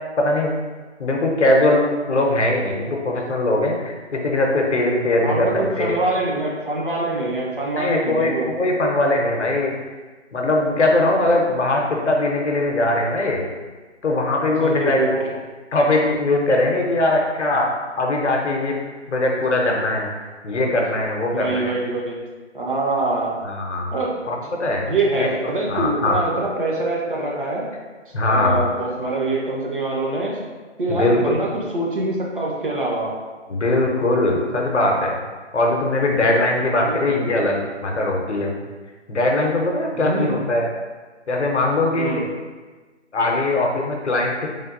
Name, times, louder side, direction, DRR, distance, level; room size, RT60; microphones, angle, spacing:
voice 1, 0.2-0.5 1.0-6.0 7.8-9.7 10.3-13.5 14.0-15.2 15.7-17.7 18.0-18.7 19.1-20.1 20.4-21.8 23.4-23.9 24.3-25.4 25.7-26.2 28.1-28.6 30.9-31.3 33.5-35.2 35.5-38.6 39.1-40.7 41.3-42.3 43.1-44.5, left 2 dB, 70° left, 0 dB, 0.6 m, -21 dB
voice 2, 5.2-8.5 14.6-15.1 21.3-22.2 22.5-23.4 23.9-24.1 24.9-27.6 28.3-30.4 30.8-33.1 36.8-37.0 39.9-40.3 41.9-42.2, right 2 dB, 45° right, -3 dB, 0.6 m, -24 dB
3.3 x 2.2 x 2.4 m, 1.3 s
figure-of-eight pair, 155°, 36 cm